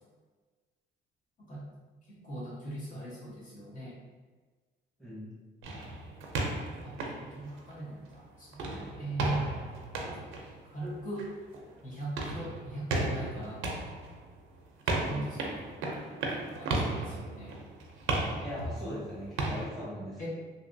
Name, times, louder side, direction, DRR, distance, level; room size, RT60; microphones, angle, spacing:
voice 1, 2.1-3.9 6.8-6.9 7.3-9.5 10.0-10.2 10.7-11.3 11.8-13.6 14.9-15.6 16.3-17.6 18.8-18.9 20.2-20.3, right 1 dB, 40° left, -6 dB, 1.2 m, -40 dB
voice 2, 5.0-5.3 15.0-15.3 18.4-20.3, equal, ahead, -8 dB, 1.0 m, -40 dB
sound 1, 5.6-8.1 8.5-19.7, right 2 dB, 90° right, 0.5 m, -35 dB
2.9 x 2.7 x 2.6 m, 1.4 s
cardioid pair, 90°, 20 cm